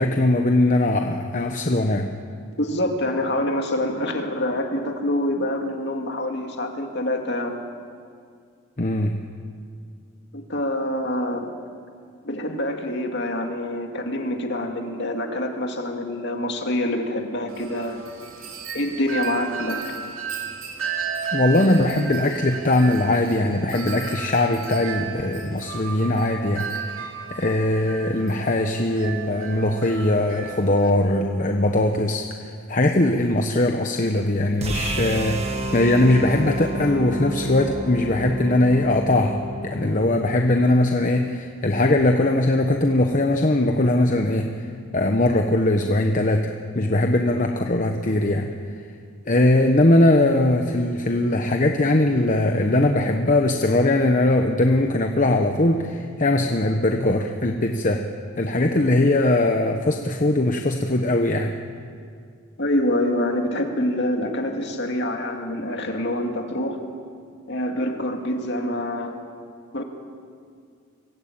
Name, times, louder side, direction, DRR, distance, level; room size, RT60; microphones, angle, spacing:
voice 1, 0.0-2.1 8.8-9.2 21.3-26.7 27.3-32.3 32.7-44.6 44.9-48.5 49.3-58.1 58.4-61.5, left 1 dB, 35° left, 4 dB, 1.0 m, -20 dB
voice 2, 2.6-7.6 10.3-11.5 12.2-18.0 18.7-19.9 62.6-66.8 67.5-69.2 69.7-69.8, left 1 dB, 55° left, 3 dB, 2.4 m, -26 dB
Wind chime, 17.5-30.9, right 6 dB, 75° right, 2.8 m, -34 dB
sound 1, 34.6-40.7, right 1 dB, 30° right, 2.0 m, -30 dB
23.5 x 16.5 x 8.9 m, 2.2 s
head